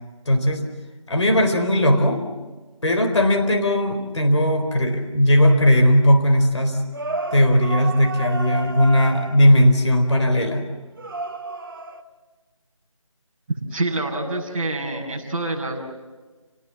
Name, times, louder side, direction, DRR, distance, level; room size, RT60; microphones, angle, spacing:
voice 1, 0.3-0.6 1.1-2.2 2.8-6.8 7.3-10.7, equal, 60° left, 5 dB, 4.2 m, -18 dB
sound 1, 6.9-9.6 11.0-12.0, right 3 dB, 40° right, 1.5 m, -31 dB
voice 2, 13.5-15.8, right 2 dB, 20° right, -6 dB, 6.5 m, -26 dB
29.5 x 19.5 x 7.5 m, 1.3 s
figure-of-eight pair, 170°, 17 cm